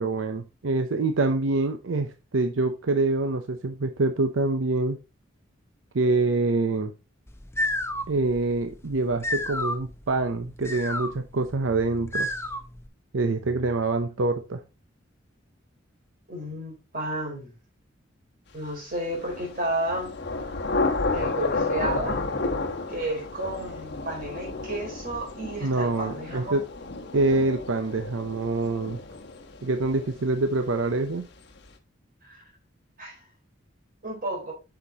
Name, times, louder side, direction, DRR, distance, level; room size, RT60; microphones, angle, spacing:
voice 1, 0.0-5.0 5.9-6.9 8.1-12.3 13.1-14.6 25.6-26.6 27.1-29.0 29.6-31.3, right 3 dB, 90° right, 0.7 m, -25 dB
sound 1, 7.3-12.9, left 1 dB, 15° left, 0.7 m, -32 dB
voice 2, 16.3-17.5 18.5-20.2 21.1-22.2 22.9-26.6 32.2-32.4 33.0-33.2 34.0-34.5, right 1 dB, 50° right, 4.2 m, -32 dB
Thunder / Rain, 19.1-30.7, left 3 dB, 60° left, 1.1 m, -32 dB
8.2 x 5.9 x 2.8 m
head